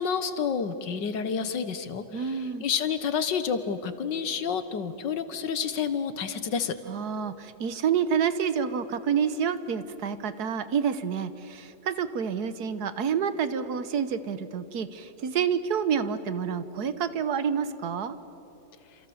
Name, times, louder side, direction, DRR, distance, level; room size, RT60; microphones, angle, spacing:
voice 1, 0.0-6.8, left 6 dB, 90° left, 11 dB, 1.9 m, -29 dB
voice 2, 2.1-2.6 6.9-18.2, right 7 dB, 65° right, 13 dB, 1.5 m, -28 dB
28.5 x 27.5 x 7.2 m, 2.9 s
omnidirectional pair, 1.9 m